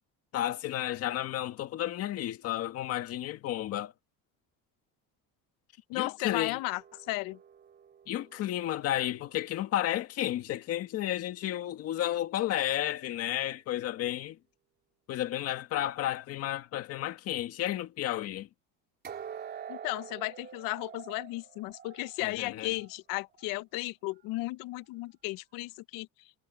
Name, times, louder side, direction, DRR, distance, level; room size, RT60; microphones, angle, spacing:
voice 1, 0.3-3.9 5.9-6.6 8.1-14.4 15.1-18.5 22.2-22.7, left 13 dB, 45° left, 2.0 m, -32 dB
voice 2, 5.9-6.8 7.1-7.4 19.7-26.1, left 20 dB, 75° left, 0.8 m, -35 dB
sound 1, 6.6-9.7 19.0-22.9 23.3-23.5 24.1-24.2, right 8 dB, 30° right, 3.5 m, -47 dB
cardioid pair, 170°, 34 cm